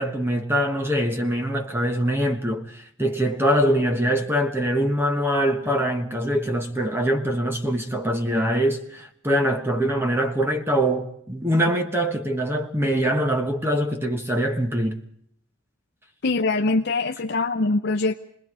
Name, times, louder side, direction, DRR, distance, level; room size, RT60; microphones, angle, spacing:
voice 1, 0.0-15.0, equal, 10° right, 1.3 m, -23 dB
voice 2, 16.2-18.2, left 3 dB, 55° left, 0.7 m, -23 dB
27.5 x 20.5 x 4.9 m
head